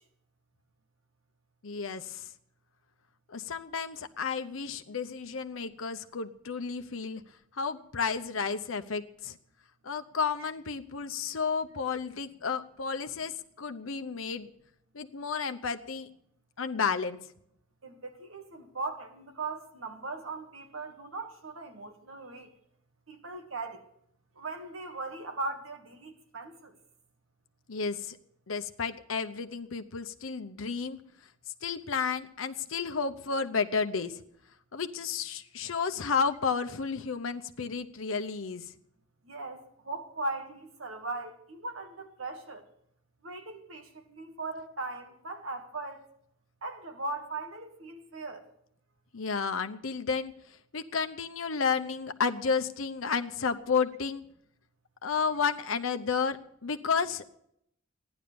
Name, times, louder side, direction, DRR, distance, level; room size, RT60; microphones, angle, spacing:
voice 1, 1.6-2.3 3.3-7.2 7.5-9.4 9.8-14.5 14.9-16.1 16.6-17.2 27.7-28.2 28.5-31.0 31.6-34.1 34.7-38.7 49.1-50.3 50.7-54.2 55.0-56.4 56.6-57.3, left 5 dB, 80° left, 8 dB, 0.8 m, -32 dB
voice 2, 17.8-22.5 23.1-23.8 24.4-26.7 39.3-42.6 43.2-46.0 46.6-48.4, right 3 dB, 90° right, 5 dB, 2.1 m, -39 dB
15.0 x 10.5 x 6.9 m, 0.72 s
head